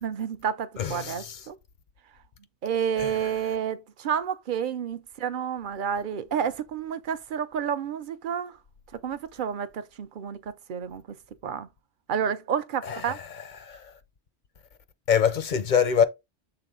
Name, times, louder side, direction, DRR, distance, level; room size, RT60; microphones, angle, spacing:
voice 1, 0.0-1.6 2.6-8.6 9.0-11.0 11.4-11.7 12.1-13.2, right 8 dB, 55° right, 0.7 m, -30 dB
voice 2, 0.8-1.4 3.0-3.1 12.8-13.2 13.6-13.8 15.1-16.0, left 7 dB, 50° left, 0.6 m, -25 dB
6.9 x 3.9 x 3.7 m
omnidirectional pair, 1.2 m